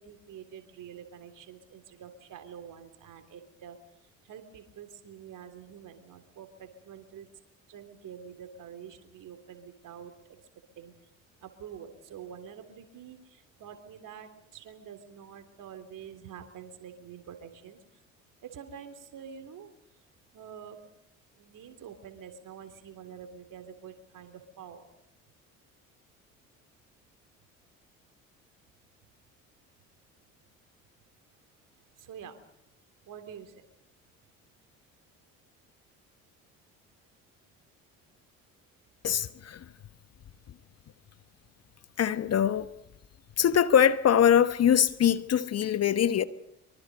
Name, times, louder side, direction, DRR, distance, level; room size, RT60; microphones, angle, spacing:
voice 1, 0.0-3.8 4.2-7.3 7.7-10.4 10.7-10.9 11.4-17.8 18.4-19.7 20.3-20.8 21.4-24.9 32.0-32.4 33.1-33.6, right 8 dB, 50° right, 3.5 m, -47 dB
voice 2, 39.0-39.7 42.0-42.7 43.4-46.2, left 9 dB, 40° left, 1.0 m, -23 dB
24.5 x 24.0 x 5.4 m
figure-of-eight pair, 55°, 40 cm